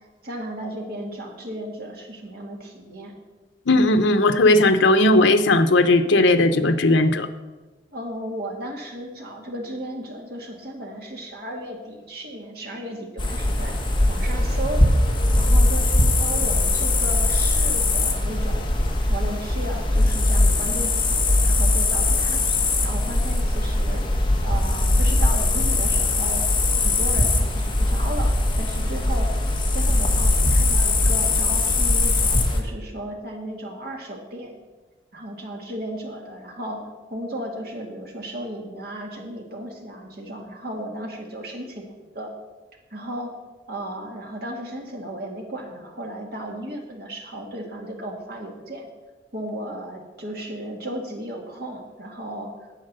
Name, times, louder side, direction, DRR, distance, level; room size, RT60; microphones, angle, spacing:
voice 1, 0.2-3.2 7.9-13.8 14.1-18.7 19.1-22.5 22.8-24.1 24.4-26.5 26.8-29.3 29.7-34.6 35.1-42.3 42.9-43.3 43.7-48.9 49.3-52.7, right 1 dB, 55° right, 0 dB, 2.1 m, -35 dB
voice 2, 3.7-7.3, left 2 dB, 85° left, 9 dB, 0.8 m, -17 dB
sound 1, 13.2-32.6, left 2 dB, 25° left, 1.3 m, -20 dB
9.0 x 8.5 x 6.8 m, 1.2 s
head